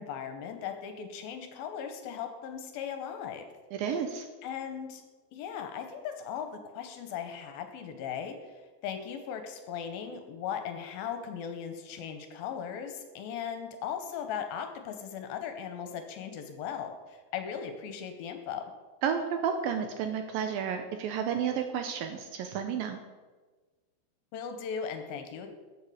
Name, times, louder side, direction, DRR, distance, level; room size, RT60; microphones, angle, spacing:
voice 1, 0.0-3.5 4.4-5.0 5.3-18.7 24.3-25.5, left 7 dB, 75° left, 6 dB, 2.5 m, -38 dB
voice 2, 3.8-4.3 19.0-23.0, right 7 dB, 80° right, 6 dB, 2.2 m, -31 dB
13.5 x 7.5 x 4.8 m, 1.3 s
omnidirectional pair, 4.6 m